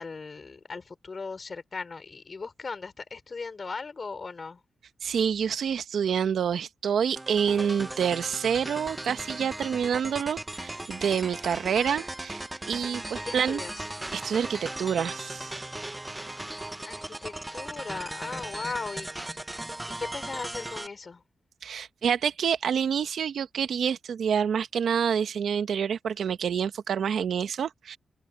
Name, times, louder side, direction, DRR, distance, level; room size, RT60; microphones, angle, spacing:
voice 1, 0.0-4.6 13.2-13.9 16.8-19.1 20.0-21.2, left 4 dB, 45° left, 4.7 m, -38 dB
voice 2, 5.0-13.6 14.1-15.5 21.6-28.0, right 7 dB, 80° right, 1.1 m, -27 dB
sound 1, 7.2-20.9, right 1 dB, 15° right, 1.1 m, -37 dB
open air
cardioid pair, 80°, 0 cm